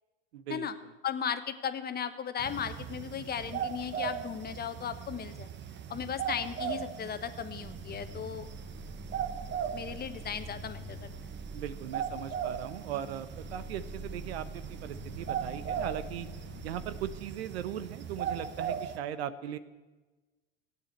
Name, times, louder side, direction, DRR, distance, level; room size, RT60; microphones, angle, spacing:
voice 1, 0.3-0.7 11.5-16.3 16.6-19.6, right 10 dB, 85° right, 13 dB, 1.0 m, -38 dB
voice 2, 1.0-5.5 5.9-8.5 9.7-11.1, left 8 dB, 30° left, 10 dB, 1.2 m, -36 dB
sound 1, 2.4-19.0, right 8 dB, 35° right, 1.1 m, -39 dB
sound 2, 7.6-17.2, right 1 dB, 10° right, 1.9 m, -45 dB
15.0 x 9.0 x 8.0 m, 1.2 s
hypercardioid pair, 95°, 31 cm